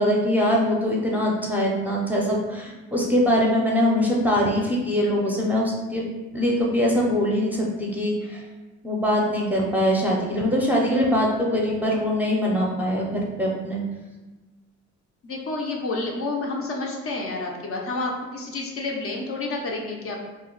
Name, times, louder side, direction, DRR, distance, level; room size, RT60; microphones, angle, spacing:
voice 1, 0.0-6.0 6.3-8.4 8.8-13.8, equal, 5° right, -3 dB, 0.5 m, -22 dB
voice 2, 15.2-20.2, left 2 dB, 50° left, 0 dB, 0.5 m, -29 dB
2.2 x 2.1 x 3.7 m, 1.2 s
cardioid pair, 90°, 30 cm